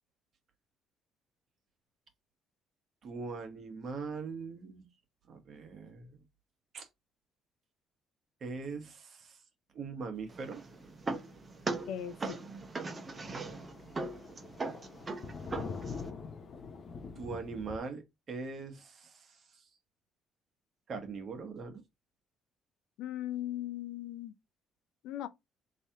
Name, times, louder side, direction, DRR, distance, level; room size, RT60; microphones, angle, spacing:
voice 1, 3.0-4.9 5.3-6.2 6.7-6.9 8.4-9.4 9.7-10.6 14.3-14.5 17.2-19.6 20.9-21.8, right 4 dB, 55° right, 1.2 m, -41 dB
sound 1, 10.3-16.1, right 3 dB, 35° right, 0.8 m, -40 dB
Thunder, 10.8-11.0 11.4-11.5 11.8-11.9 12.3-12.4 12.6-17.8, left 5 dB, 50° left, 0.8 m, -44 dB
voice 2, 11.9-12.4 23.0-24.3 25.0-25.3, left 12 dB, 80° left, 0.4 m, -38 dB
3.2 x 2.8 x 3.5 m
supercardioid pair, 70°, 0 cm